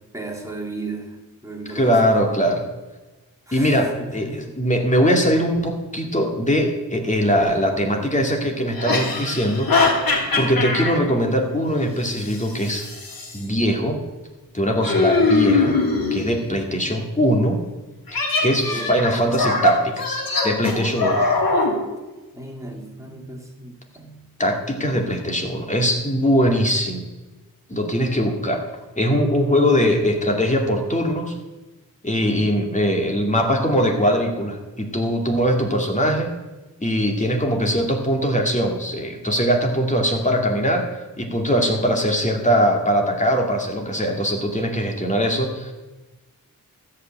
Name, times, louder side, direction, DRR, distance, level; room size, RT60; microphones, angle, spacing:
voice 1, 0.1-1.2 1.4-2.5 3.5-4.6 10.3-10.5 16.4-16.9 18.4-18.9 22.3-24.2, right 2 dB, 10° right, 0 dB, 2.6 m, -36 dB
voice 2, 1.7-2.6 3.5-9.7 10.4-12.9 13.3-14.0 14.5-15.8 16.1-17.6 18.1-20.2 20.4-21.2 24.4-27.0 27.7-28.6 29.0-31.3 32.0-36.3 36.8-40.9 41.2-45.7, equal, 20° left, 2 dB, 2.4 m, -21 dB
sound 1, 7.4-7.5 8.7-11.0 12.2-13.4 14.8-16.3 18.1-21.7, left 3 dB, 75° left, 3.0 m, -21 dB
13.5 x 5.7 x 8.8 m, 1.1 s
wide cardioid pair, 90°, 35 cm